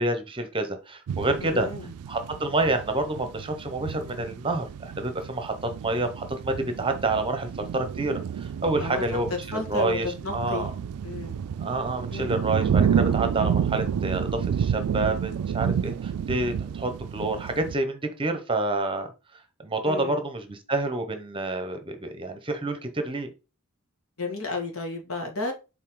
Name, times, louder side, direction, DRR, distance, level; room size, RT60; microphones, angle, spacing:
voice 1, 0.0-1.7 2.1-5.5 5.8-9.3 9.7-10.1 10.3-10.7 11.6-19.1 19.6-23.3, right 2 dB, 25° right, 0.9 m, -28 dB
sound 1, 1.1-17.7, right 7 dB, 90° right, 0.3 m, -30 dB
voice 2, 1.4-1.9 8.8-10.7 11.0-11.4 12.1-12.3 19.8-20.2 24.2-25.5, left 3 dB, 70° left, 1.9 m, -32 dB
7.4 x 4.0 x 3.8 m
head